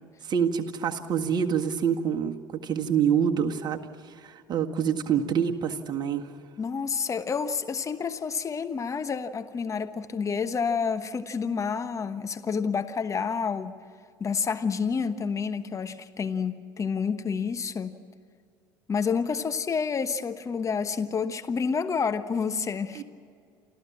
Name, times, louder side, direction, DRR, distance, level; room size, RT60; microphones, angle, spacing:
voice 1, 0.3-3.8 4.2-6.3 23.0-23.1, right 7 dB, 40° right, 4 dB, 1.7 m, -26 dB
voice 2, 6.6-13.8 14.2-18.0 18.9-23.0, left 5 dB, 30° left, 10 dB, 1.2 m, -29 dB
28.5 x 14.0 x 7.4 m, 2.3 s
hypercardioid pair, 65°, 11 cm